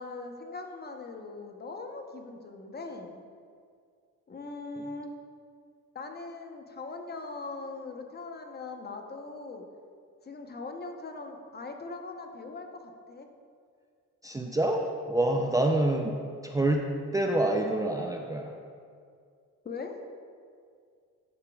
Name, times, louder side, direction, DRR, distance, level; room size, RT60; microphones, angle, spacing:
voice 1, 0.0-3.2 4.3-5.1 5.9-9.6 10.2-13.3 19.6-19.9, left 3 dB, 35° left, 4 dB, 0.9 m, -40 dB
voice 2, 14.2-16.2 16.4-18.5, right 1 dB, 10° right, 1 dB, 0.5 m, -27 dB
12.0 x 6.8 x 2.4 m, 2.2 s
cardioid pair, 90°, 30 cm